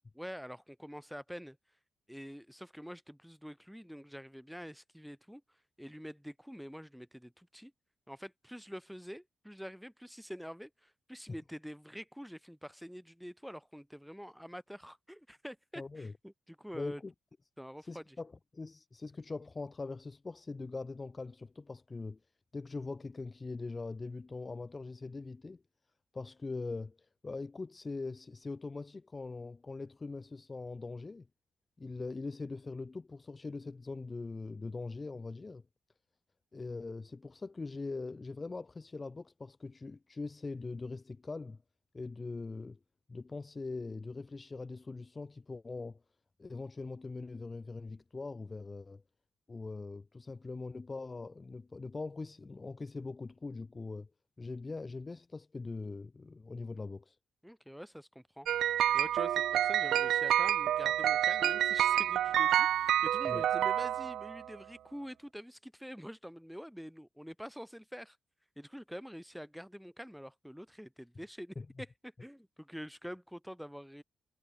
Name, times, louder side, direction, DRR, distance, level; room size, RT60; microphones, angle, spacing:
voice 1, 0.2-1.6 2.1-7.7 8.1-17.0 17.6-18.2 57.4-58.5 58.9-68.2 68.6-74.0, equal, ahead, 5.6 m, -46 dB
voice 2, 15.8-16.1 16.7-17.1 17.8-22.2 22.5-25.6 26.1-31.3 31.8-35.6 36.5-41.6 41.9-42.8 43.1-46.0 46.4-49.0 49.5-54.1 54.4-57.2 63.3-63.5 71.6-71.7, left 3 dB, 25° left, 2.4 m, -42 dB
sound 1, 58.5-64.5, right 11 dB, 90° right, 0.3 m, -28 dB
cardioid pair, 140°, 0 cm